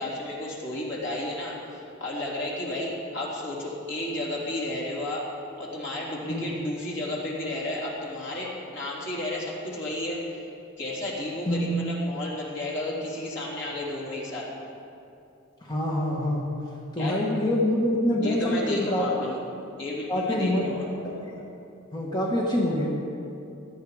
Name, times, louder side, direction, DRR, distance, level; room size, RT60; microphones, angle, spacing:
voice 1, 0.0-5.2 5.6-10.4 10.8-14.5 17.0-17.3 18.2-19.4 19.8-20.9, left 1 dB, 65° left, -4 dB, 3.6 m, -32 dB
voice 2, 15.7-16.5 16.9-19.1 20.1-21.4 21.9-22.9, left 1 dB, 20° left, -3 dB, 1.5 m, -26 dB
18.0 x 12.5 x 5.0 m, 2.7 s
head